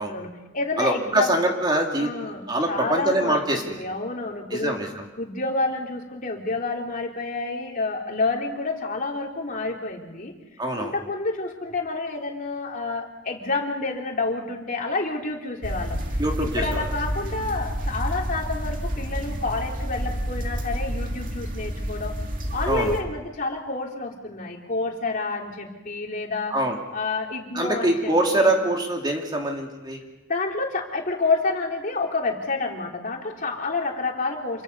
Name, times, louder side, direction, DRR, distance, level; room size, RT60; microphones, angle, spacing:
voice 1, 0.0-1.3 2.0-4.8 5.2-10.3 10.8-16.0 16.6-22.2 22.5-26.6 26.9-28.5 30.3-34.6, left 3 dB, 45° left, 1 dB, 3.3 m, -29 dB
voice 2, 0.8-2.1 2.5-3.8 4.5-4.9 10.6-10.9 16.2-16.8 22.7-23.0 26.5-26.8 27.5-30.0, right 1 dB, 25° right, 1 dB, 2.6 m, -24 dB
sound 1, 15.6-23.0, equal, 45° right, 2.4 m, -29 dB
27.5 x 23.5 x 5.4 m, 1.1 s
head